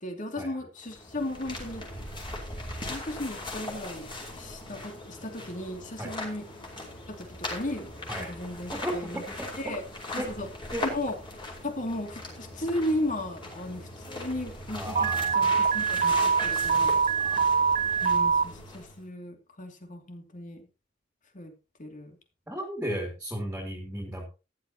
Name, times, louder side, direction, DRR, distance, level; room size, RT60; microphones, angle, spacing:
voice 1, 0.0-1.9 2.8-4.1 4.3-6.4 7.1-9.2 9.6-9.8 10.1-10.5 10.8-11.2 11.6-15.1 15.3-17.0 18.0-20.7 21.3-21.5 21.8-22.2, left 1 dB, 45° left, 5 dB, 2.7 m, -35 dB
sound 1, 0.8-19.0, left 2 dB, 25° left, 5.0 m, -39 dB
voice 2, 8.7-9.5 10.2-10.3 10.7-10.8 14.7-15.5 17.1-17.5 22.5-24.3, right 1 dB, 10° right, 1 dB, 2.9 m, -35 dB
Alarm, 15.0-18.4, right 6 dB, 40° right, 0.7 m, -24 dB
14.5 x 11.5 x 3.0 m, 0.30 s
head